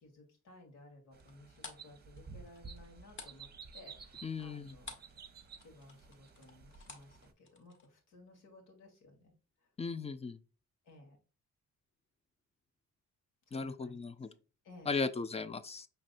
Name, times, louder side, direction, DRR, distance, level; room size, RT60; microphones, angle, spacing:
voice 1, 0.0-3.5 3.7-5.0 5.6-9.3 9.6-9.7 10.8-11.2 13.5-14.3 14.6-15.0, left 2 dB, 85° left, 1.9 m, -57 dB
sound 1, 1.1-7.3, right 5 dB, 30° right, 0.8 m, -53 dB
sound 2, 1.2-5.2 5.5-7.9, left 3 dB, 40° left, 1.3 m, -52 dB
voice 2, 4.2-4.7 9.8-10.4 13.5-14.3 14.9-15.9, left 4 dB, 20° left, 0.4 m, -37 dB
5.1 x 3.3 x 2.5 m
cardioid pair, 90°, 30 cm